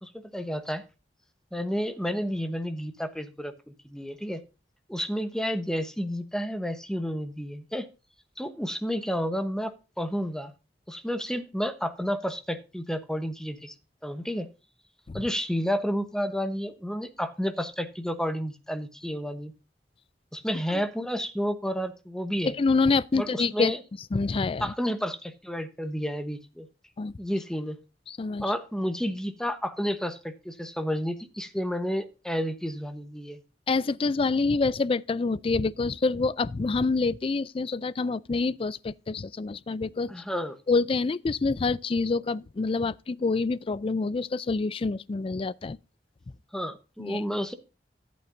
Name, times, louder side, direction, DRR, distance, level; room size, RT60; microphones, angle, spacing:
voice 1, 0.0-0.8 1.5-4.4 4.9-7.9 8.4-10.5 10.9-13.7 14.0-14.5 15.1-19.5 20.3-22.5 23.1-23.8 24.6-26.7 27.2-27.8 28.4-33.4 40.1-40.6 46.5-47.5, equal, 5° left, 0.9 m, -31 dB
voice 2, 22.4-23.7 24.1-24.7 27.0-27.1 28.1-28.4 33.7-40.1 40.7-45.8 47.0-47.2, left 3 dB, 30° left, 0.4 m, -26 dB
14.0 x 8.6 x 2.6 m
head